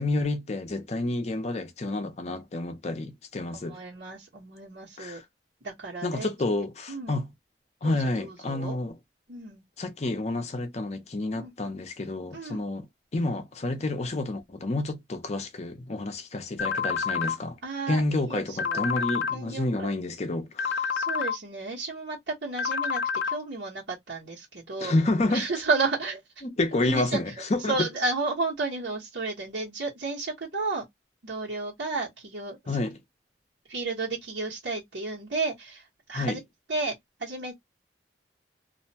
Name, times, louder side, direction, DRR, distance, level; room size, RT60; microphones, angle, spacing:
voice 1, 0.0-3.8 5.0-5.2 6.0-7.3 7.8-9.0 9.8-12.8 13.1-17.6 17.9-20.9 24.8-25.5 26.4-27.9 32.7-33.0 36.1-36.4, left 2 dB, 40° left, 0.6 m, -29 dB
voice 2, 3.5-5.2 5.6-6.3 6.9-7.2 7.8-8.8 9.3-9.6 11.4-11.5 12.3-12.7 17.6-18.0 18.3-18.9 19.3-19.9 20.9-24.9 25.3-26.2 26.7-27.2 27.7-30.9 31.2-32.6 33.7-36.4 36.7-37.5, right 3 dB, 80° right, 1.2 m, -32 dB
sound 1, 16.6-17.4 18.6-19.4 20.6-21.4 22.6-23.4, left 6 dB, 80° left, 0.4 m, -28 dB
2.6 x 2.2 x 2.7 m
head